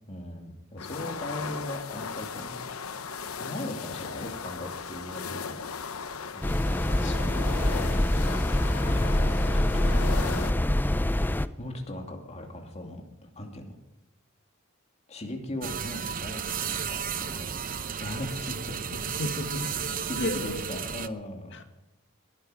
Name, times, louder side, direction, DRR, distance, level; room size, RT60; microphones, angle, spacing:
voice 1, 0.1-2.6 3.4-5.7 6.3-6.6 8.8-9.9 10.2-10.5 11.6-13.0 13.4-13.8 15.1-19.2 19.6-21.6, left 1 dB, 30° left, 2 dB, 2.7 m, -39 dB
sound 1, 0.8-10.5, left 5 dB, 85° left, 1.0 m, -37 dB
sound 2, 6.4-11.5, left 1 dB, 10° left, 0.5 m, -25 dB
voice 2, 7.0-7.5 18.9-19.6 20.2-20.8 21.5-21.6, left 2 dB, 60° left, 6 dB, 2.0 m, -35 dB
sound 3, 15.6-21.1, right 7 dB, 40° right, 0.8 m, -33 dB
20.5 x 12.0 x 5.1 m, 0.98 s
head